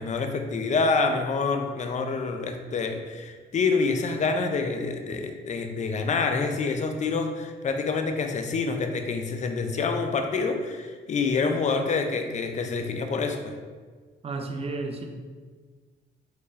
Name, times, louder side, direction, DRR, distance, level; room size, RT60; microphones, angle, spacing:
voice 1, 0.0-13.5, left 4 dB, 35° left, 5 dB, 0.4 m, -27 dB
voice 2, 14.2-15.1, right 3 dB, 30° right, 4 dB, 0.5 m, -32 dB
4.6 x 3.1 x 2.4 m, 1.5 s
cardioid pair, 90°, 20 cm